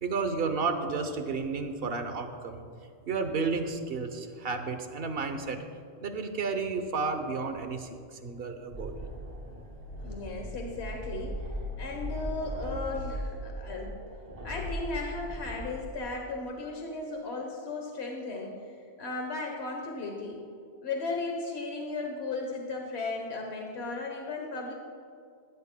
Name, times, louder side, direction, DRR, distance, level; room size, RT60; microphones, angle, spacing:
voice 1, 0.0-2.6 3.1-5.6 6.0-9.0, right 4 dB, 65° right, 7 dB, 1.1 m, -32 dB
sound 1, 8.7-16.0, equal, 40° right, 2.6 m, -38 dB
voice 2, 10.0-11.5 11.8-13.9 14.4-20.4 20.8-24.7, left 3 dB, 90° left, 1 dB, 1.4 m, -36 dB
16.5 x 12.5 x 2.2 m, 2.3 s
omnidirectional pair, 1.1 m